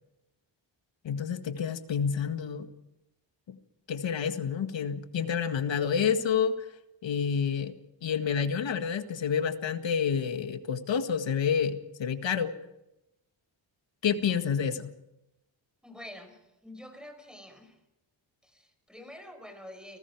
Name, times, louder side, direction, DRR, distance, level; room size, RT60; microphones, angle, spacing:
voice 1, 1.0-2.7 3.5-3.6 3.9-6.7 7.0-7.7 8.0-12.5 14.0-14.9, left 7 dB, 70° left, 8 dB, 1.9 m, -29 dB
voice 2, 15.8-17.8 18.4-20.0, left 1 dB, ahead, 7 dB, 5.0 m, -47 dB
30.0 x 19.5 x 4.8 m, 0.90 s
wide cardioid pair, 120°, 46 cm